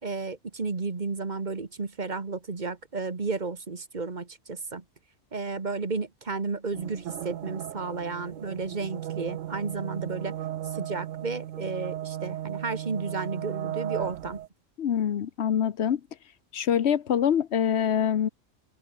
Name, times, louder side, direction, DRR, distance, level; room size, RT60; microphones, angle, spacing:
voice 1, 0.0-4.8 5.3-10.3 10.7-14.4, right 4 dB, 35° right, 1.6 m, -33 dB
sound 1, 6.7-14.5, right 12 dB, 75° right, 1.0 m, -36 dB
voice 2, 14.8-16.0 16.5-18.3, left 9 dB, 60° left, 1.1 m, -25 dB
open air
omnidirectional pair, 1.4 m